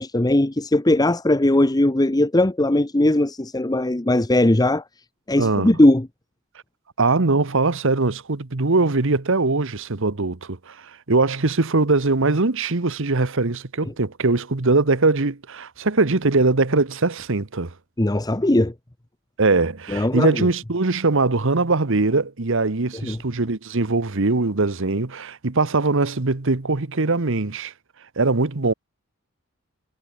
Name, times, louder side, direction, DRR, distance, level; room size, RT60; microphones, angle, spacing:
voice 1, 0.0-4.8 5.3-6.1 18.0-18.7 19.9-20.5 23.0-23.2, left 1 dB, 20° left, 0.9 m, -19 dB
voice 2, 5.4-5.7 7.0-17.7 19.4-27.7 28.2-28.7, right 3 dB, 65° right, 1.2 m, -21 dB
head